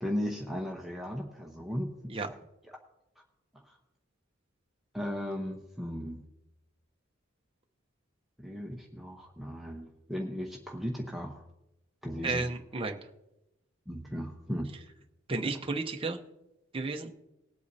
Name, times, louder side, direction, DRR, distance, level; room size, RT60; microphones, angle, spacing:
voice 1, 0.0-2.2 3.2-3.3 3.5-3.8 4.9-6.2 8.4-11.4 12.0-12.5 13.9-14.7, equal, ahead, -1 dB, 0.9 m, -36 dB
voice 2, 12.2-13.0 15.3-16.2 16.7-17.1, right 3 dB, 25° right, 3 dB, 0.8 m, -32 dB
20.0 x 8.3 x 2.7 m, 0.91 s
head